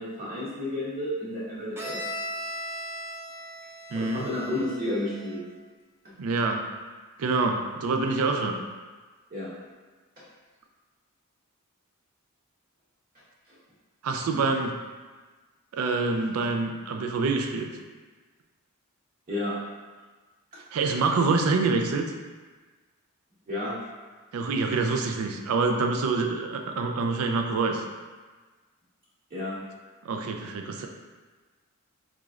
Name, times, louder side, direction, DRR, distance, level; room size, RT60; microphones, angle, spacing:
voice 1, 0.0-2.1 3.9-5.4 9.3-9.5 10.2-10.3 13.5-13.6 19.3-19.6 23.5-23.8 29.3-29.6, left 1 dB, 40° right, -8 dB, 0.8 m, -31 dB
Bowed string instrument, 1.8-5.5, equal, 10° right, 0.4 m, -38 dB
voice 2, 3.9-4.3 6.2-6.7 7.2-8.6 14.0-14.7 15.7-17.7 20.7-22.1 24.3-27.8 30.0-30.9, right 3 dB, 75° right, 4 dB, 0.4 m, -26 dB
3.7 x 3.1 x 2.4 m, 1.3 s
head